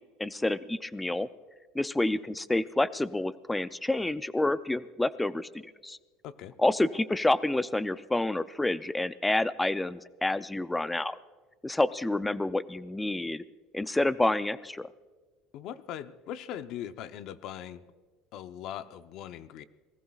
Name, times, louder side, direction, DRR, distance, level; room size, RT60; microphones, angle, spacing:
voice 1, 0.2-1.3 1.7-6.0 6.6-11.2 11.6-13.4 13.7-14.9, left 2 dB, 5° left, 14 dB, 0.4 m, -28 dB
voice 2, 6.2-6.5 15.5-17.8 18.3-19.6, left 10 dB, 45° left, 11 dB, 0.7 m, -40 dB
29.0 x 19.0 x 2.4 m, 1.4 s
cardioid pair, 175°, 0 cm